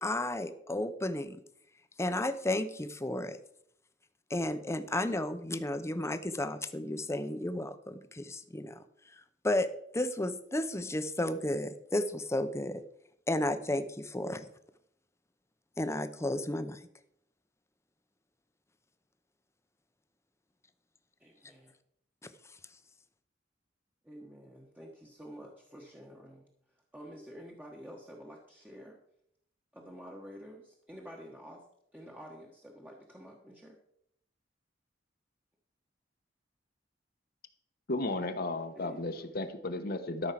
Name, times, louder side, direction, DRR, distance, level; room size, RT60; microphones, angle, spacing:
voice 1, 0.0-1.4 2.0-3.4 4.3-8.8 9.4-9.7 9.9-12.8 13.3-14.5 15.8-16.8, left 1 dB, 15° left, 10 dB, 0.8 m, -33 dB
voice 2, 21.2-21.7 24.0-26.5 26.9-29.0 29.7-31.6 31.9-33.8 38.7-39.4, equal, 10° right, -1 dB, 1.3 m, -49 dB
voice 3, 37.9-40.3, left 2 dB, 55° left, 7 dB, 1.1 m, -34 dB
13.0 x 6.3 x 5.9 m, 0.73 s
head